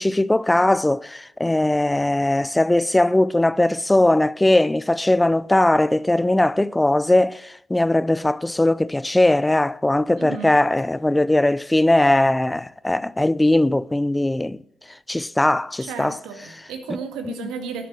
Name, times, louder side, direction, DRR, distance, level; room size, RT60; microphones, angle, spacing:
voice 1, 0.0-14.6 15.1-16.2, left 1 dB, 15° left, 0.5 m, -19 dB
voice 2, 10.2-10.6 15.8-17.9, right 6 dB, 70° right, 1.9 m, -33 dB
12.0 x 10.0 x 6.3 m
hypercardioid pair, 40°, 0 cm